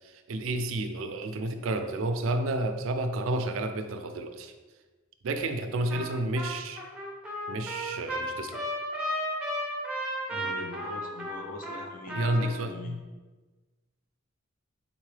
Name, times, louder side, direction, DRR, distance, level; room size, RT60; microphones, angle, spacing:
voice 1, 0.0-4.5 5.2-6.8 7.5-8.6 12.1-13.0, right 2 dB, 70° right, 7 dB, 0.4 m, -31 dB
Trumpet, 5.9-6.1 6.4-12.6, equal, 5° right, 0.7 m, -34 dB
voice 2, 10.3-12.9, left 3 dB, 40° left, 1 dB, 0.6 m, -41 dB
4.0 x 3.7 x 3.2 m, 1.3 s
head